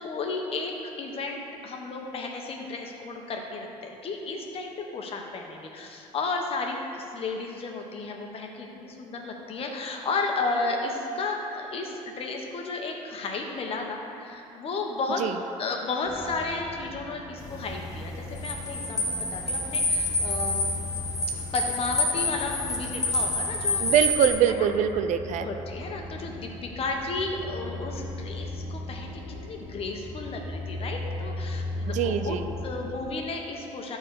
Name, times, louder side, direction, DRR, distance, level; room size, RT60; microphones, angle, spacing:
voice 1, 0.0-15.2 15.6-20.7 21.5-23.9 24.5-24.7 25.4-34.0, left 3 dB, 45° left, 1 dB, 1.4 m, -33 dB
sound 1, 16.0-33.0, left 1 dB, 5° right, 2.2 m, -38 dB
sound 2, 17.4-24.3, left 2 dB, 25° left, 1.4 m, -28 dB
voice 2, 23.8-25.5 31.9-32.5, right 9 dB, 65° right, 10 dB, 0.5 m, -24 dB
12.5 x 4.4 x 6.6 m, 2.9 s
cardioid pair, 110°, 13 cm